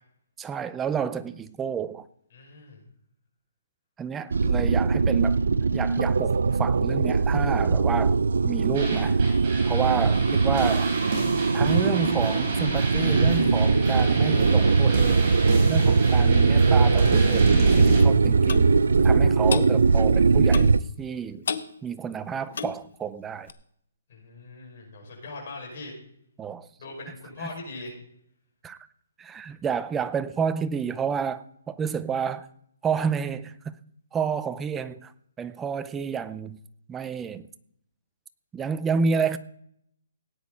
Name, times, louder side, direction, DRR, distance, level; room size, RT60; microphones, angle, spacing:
voice 1, 0.4-2.1 4.0-5.4 5.7-8.2 8.4-9.2 9.7-10.9 11.5-15.3 15.6-20.7 21.0-21.4 21.8-23.5 26.4-26.7 28.6-28.8 29.2-32.5 32.8-33.8 34.1-35.1 35.4-36.6 36.9-37.5 38.5-39.4, right 6 dB, 10° right, 0.5 m, -30 dB
voice 2, 2.3-2.8 24.1-25.9 26.8-27.9, left 3 dB, 45° left, 6.4 m, -40 dB
sound 1, 4.3-20.8, right 4 dB, 85° right, 0.5 m, -21 dB
sound 2, 8.7-18.0, right 2 dB, 30° right, 5.2 m, -32 dB
Clock, 18.5-18.7 19.5-19.7 20.5-20.8 21.5-21.7 22.5-22.8 23.5-23.6, left 6 dB, 65° left, 1.0 m, -30 dB
17.5 x 9.5 x 4.3 m
hypercardioid pair, 165°, 0 cm